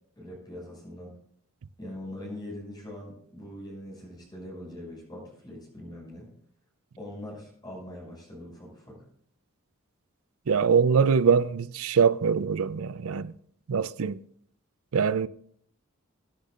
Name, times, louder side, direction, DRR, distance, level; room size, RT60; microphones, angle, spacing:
voice 1, 0.2-1.1 1.8-6.3 7.0-9.0, left 1 dB, 20° left, 6.1 m, -42 dB
voice 2, 10.5-13.3 13.7-14.2 14.9-15.3, right 6 dB, 80° right, 0.5 m, -23 dB
23.5 x 10.0 x 2.5 m
head